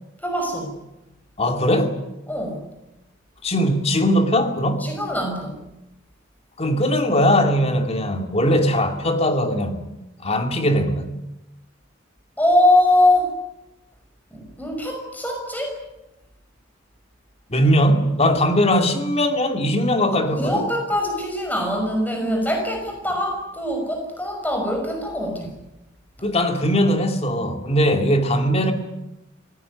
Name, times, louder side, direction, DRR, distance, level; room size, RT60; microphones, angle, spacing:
voice 1, 0.2-0.7 2.3-2.6 4.8-5.6 12.4-13.3 14.3-15.8 20.3-25.5, left 1 dB, 10° left, 5.9 m, -22 dB
voice 2, 1.4-2.0 3.4-4.9 6.6-9.8 10.2-11.1 17.5-20.6 26.2-28.7, equal, 30° left, 2.6 m, -20 dB
25.5 x 17.5 x 9.9 m
head